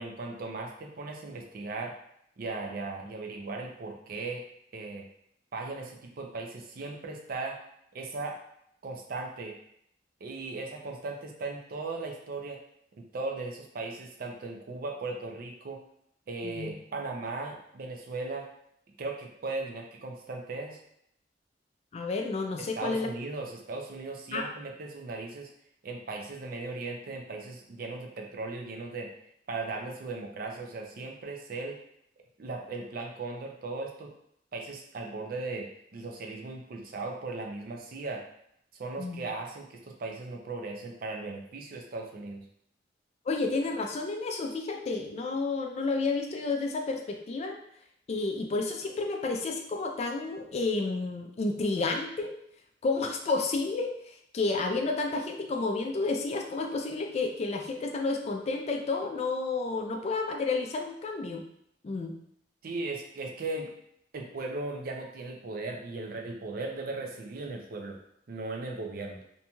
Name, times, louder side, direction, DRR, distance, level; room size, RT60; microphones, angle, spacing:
voice 1, 0.0-1.9 2.4-4.4 4.7-5.1 5.5-7.6 7.9-8.4 8.8-9.5 10.2-12.6 13.0-15.8 16.3-18.5 19.0-20.8 22.6-25.5 25.8-29.1 29.5-31.8 32.4-34.1 34.5-35.7 35.9-38.2 38.8-42.4 62.6-63.7 64.1-68.0 68.3-69.2, right 3 dB, 55° right, 2 dB, 0.5 m, -37 dB
voice 2, 16.4-16.7 21.9-23.1 24.3-24.5 39.0-39.3 43.3-47.6 48.1-52.3 52.8-61.4 61.8-62.1, left 3 dB, 35° left, 3 dB, 0.3 m, -31 dB
2.9 x 2.6 x 2.3 m, 0.71 s
head